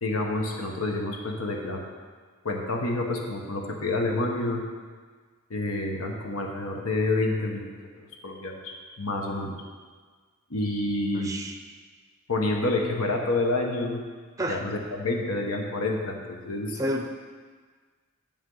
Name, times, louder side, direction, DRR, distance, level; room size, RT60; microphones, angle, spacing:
voice 1, 0.0-1.8 2.4-4.6 5.5-9.6 10.5-11.3 12.3-14.0 14.5-16.8, left 2 dB, 85° left, 1 dB, 1.1 m, -28 dB
voice 2, 11.1-11.6 14.4-14.6 16.8-17.1, equal, 15° right, 4 dB, 0.5 m, -29 dB
8.9 x 8.6 x 3.9 m, 1.5 s
head